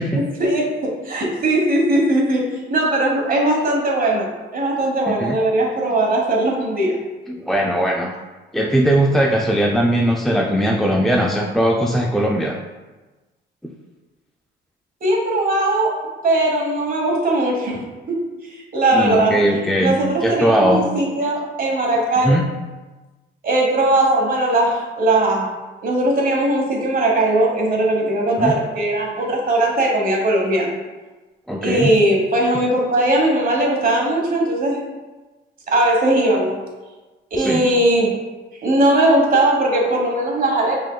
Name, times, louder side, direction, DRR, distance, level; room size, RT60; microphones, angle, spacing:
voice 1, 0.4-7.0 15.0-17.8 18.1-18.2 18.5-19.4 19.8-22.3 23.4-25.5 25.8-30.7 31.6-34.8 35.7-36.6 37.3-38.2 38.6-40.8, right 1 dB, 45° right, 0 dB, 1.2 m, -19 dB
voice 2, 5.1-5.4 7.3-8.1 8.5-12.6 18.9-20.8 22.2-22.4 28.4-28.5 31.5-31.9 37.4-37.6, right 1 dB, ahead, -1 dB, 0.3 m, -19 dB
5.1 x 3.7 x 2.3 m, 1.2 s
cardioid pair, 90°, 20 cm